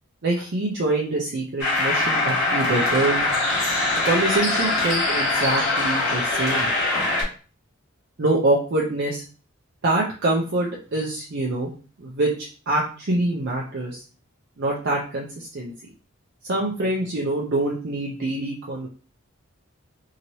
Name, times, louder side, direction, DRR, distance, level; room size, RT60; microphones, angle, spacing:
voice 1, 0.2-3.3 4.0-6.7 8.2-9.2 9.8-11.7 12.0-12.3 12.7-14.0 14.6-15.7 16.5-18.9, right 2 dB, 50° right, -3 dB, 0.5 m, -25 dB
sound 1, 1.6-7.2, left 2 dB, 50° left, 1.3 m, -22 dB
2.9 x 2.8 x 2.7 m, 0.39 s
head